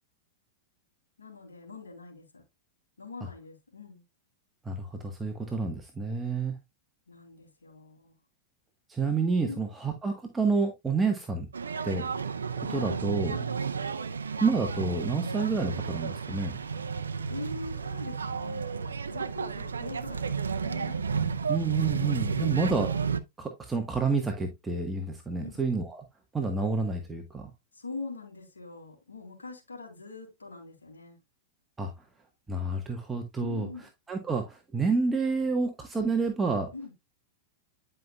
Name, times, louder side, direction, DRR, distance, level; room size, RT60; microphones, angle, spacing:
voice 1, 1.2-2.4 3.0-4.0 7.1-8.1 9.4-9.6 11.9-12.1 13.3-13.5 17.3-21.0 22.4-22.6 25.4-25.6 27.7-31.2 33.4-33.9 36.7-36.9, left 3 dB, 85° left, 3.5 m, -43 dB
voice 2, 4.6-6.5 8.9-11.5 11.8-12.0 12.6-13.4 14.4-16.5 21.5-22.9 23.4-26.0 26.3-27.5 31.8-31.9 32.5-33.7 34.1-36.7, right 4 dB, 15° right, 1.3 m, -29 dB
sound 1, 11.5-23.2, right 5 dB, 85° right, 0.6 m, -32 dB
10.5 x 5.6 x 2.3 m
hypercardioid pair, 100°, 0 cm